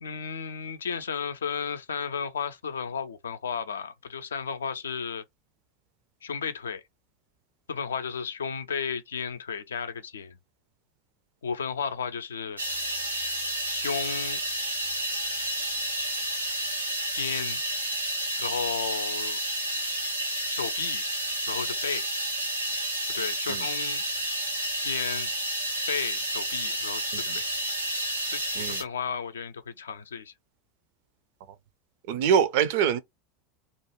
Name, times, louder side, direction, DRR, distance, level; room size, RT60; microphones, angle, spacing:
voice 1, 0.0-5.2 6.2-6.8 7.7-10.4 11.4-12.6 13.7-14.4 17.1-17.6 18.4-19.4 20.5-21.0 21.5-22.1 23.1-24.0 24.8-25.3 25.9-27.4 28.3-30.3, left 6 dB, 75° left, 0.4 m, -33 dB
sound 1, 12.6-28.8, right 1 dB, 90° right, 0.8 m, -30 dB
voice 2, 32.1-33.0, right 8 dB, 55° right, 0.5 m, -24 dB
2.5 x 2.2 x 2.9 m
figure-of-eight pair, 80°, 0 cm